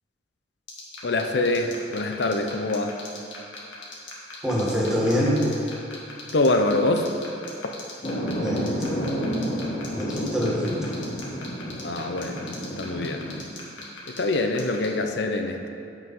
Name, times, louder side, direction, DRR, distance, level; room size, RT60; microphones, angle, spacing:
sound 1, 0.7-14.9, left 5 dB, 80° left, 1.9 m, -39 dB
voice 1, 1.0-2.9 6.3-7.1 11.8-12.5 12.8-13.2 14.1-15.7, left 2 dB, 65° left, 5 dB, 0.7 m, -24 dB
voice 2, 4.4-5.4 8.4-8.9 9.9-10.9, equal, 5° right, -6 dB, 1.7 m, -25 dB
sound 2, 8.0-13.4, equal, 35° left, 1.1 m, -30 dB
9.8 x 6.0 x 5.5 m, 2.6 s
head